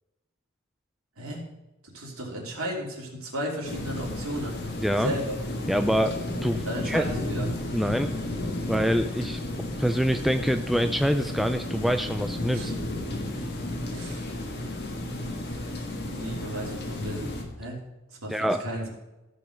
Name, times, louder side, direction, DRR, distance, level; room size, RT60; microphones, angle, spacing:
voice 1, 1.8-4.6 5.0-5.4 6.6-7.5 12.5-12.7 13.9-14.2 16.1-17.8 18.1-18.9, right 1 dB, 90° right, -1 dB, 2.8 m, -34 dB
sound 1, 3.6-17.4, left 1 dB, 50° left, 1.8 m, -33 dB
voice 2, 4.8-5.1 5.7-7.1 7.7-8.1 8.7-9.4 9.8-12.7 18.3-18.6, equal, ahead, 7 dB, 0.3 m, -25 dB
14.5 x 5.5 x 5.1 m, 1.0 s
head